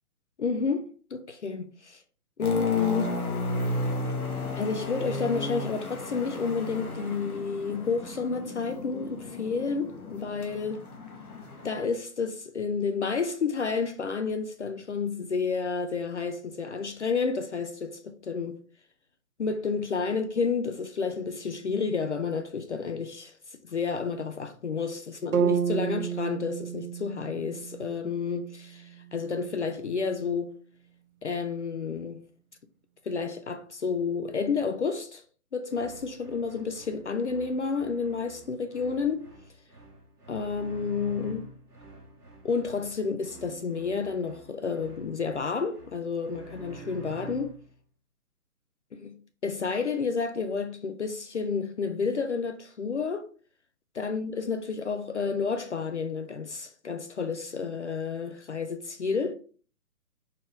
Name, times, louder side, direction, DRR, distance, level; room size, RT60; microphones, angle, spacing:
voice 1, 0.4-2.0 2.4-3.1 4.6-10.8 11.6-18.6 19.4-30.5 31.2-32.2 33.1-35.2 35.5-39.3 40.3-41.5 42.4-47.5 48.9-49.2 49.4-53.3 54.0-59.3, left 5 dB, 50° left, 0.5 m, -30 dB
sound 1, 2.4-11.8, left 1 dB, 70° left, 1.2 m, -34 dB
sound 2, 25.3-29.4, right 7 dB, 65° right, 0.6 m, -31 dB
sound 3, 35.7-47.7, right 3 dB, 85° right, 1.3 m, -48 dB
4.5 x 3.1 x 3.5 m
figure-of-eight pair, 135°, 45 cm